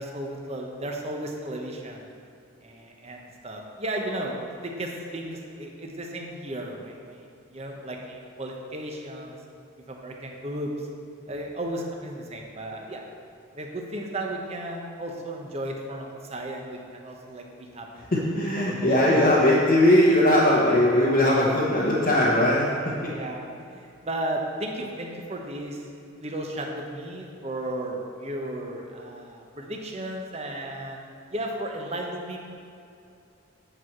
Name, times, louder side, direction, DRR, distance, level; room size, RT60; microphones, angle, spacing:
voice 1, 0.0-2.1 2.6-9.4 9.9-10.9 11.3-13.0 13.5-18.0 18.4-19.1 21.0-21.1 23.1-25.9 26.2-31.0 31.3-32.4, right 1 dB, 30° right, 1 dB, 0.9 m, -34 dB
voice 2, 18.1-23.1, left 1 dB, 45° left, -6 dB, 1.0 m, -20 dB
8.9 x 4.7 x 5.9 m, 2.6 s
head